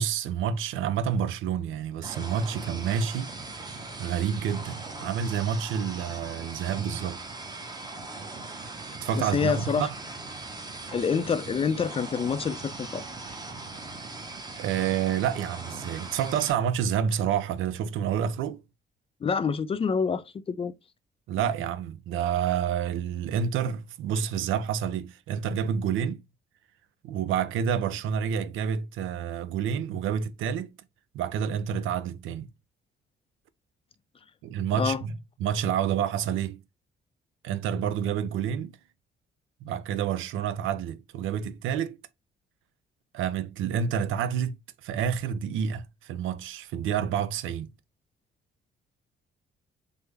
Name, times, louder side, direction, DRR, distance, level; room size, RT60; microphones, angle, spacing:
voice 1, 0.0-3.3 4.0-7.2 9.0-9.9 14.6-18.6 21.3-26.2 27.0-30.7 31.1-32.5 34.4-36.6 37.4-38.8 39.6-42.0 43.1-44.6 44.8-47.7, right 8 dB, 80° right, 0.4 m, -29 dB
sound 1, 2.0-16.5, right 3 dB, 20° right, 0.7 m, -40 dB
voice 2, 9.2-9.9 10.9-13.0 19.2-20.7 34.8-35.0, left 6 dB, 30° left, 0.3 m, -27 dB
3.4 x 2.0 x 3.1 m
cardioid pair, 90°, 20 cm